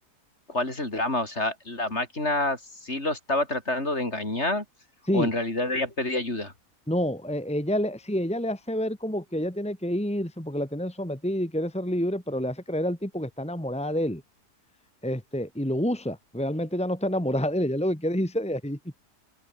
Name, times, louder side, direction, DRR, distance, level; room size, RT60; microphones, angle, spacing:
voice 1, 0.5-4.6 5.1-6.5, left 2 dB, 45° left, 5.1 m, -28 dB
voice 2, 6.9-14.2 15.0-18.8, equal, 5° left, 2.4 m, -28 dB
open air
omnidirectional pair, 1.7 m